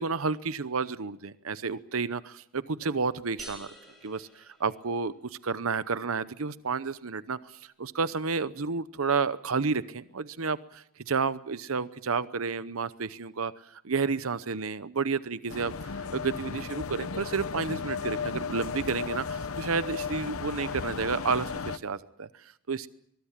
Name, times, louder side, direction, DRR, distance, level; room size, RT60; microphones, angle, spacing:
voice 1, 0.0-3.7 4.0-22.9, right 4 dB, 85° right, 14 dB, 0.8 m, -31 dB
sound 1, 3.4-5.2, equal, ahead, 6.4 m, -48 dB
sound 2, 15.5-21.8, left 5 dB, 85° left, 0.9 m, -35 dB
23.5 x 22.0 x 7.4 m, 0.73 s
head